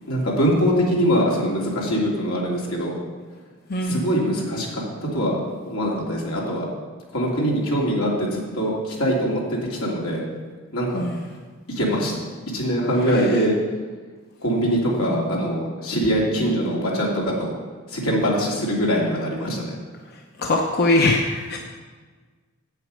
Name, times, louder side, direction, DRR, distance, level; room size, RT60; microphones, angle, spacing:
voice 1, 0.1-2.9 3.8-5.4 5.7-6.7 7.1-10.2 10.7-11.0 11.7-12.1 12.5-13.5 14.4-17.1 17.4-17.5 17.9-19.7, equal, 85° left, -3 dB, 2.9 m, -23 dB
voice 2, 3.7-4.0 10.9-11.2 20.4-21.6, left 2 dB, 50° left, 1 dB, 0.8 m, -21 dB
8.6 x 8.2 x 6.4 m, 1.4 s
head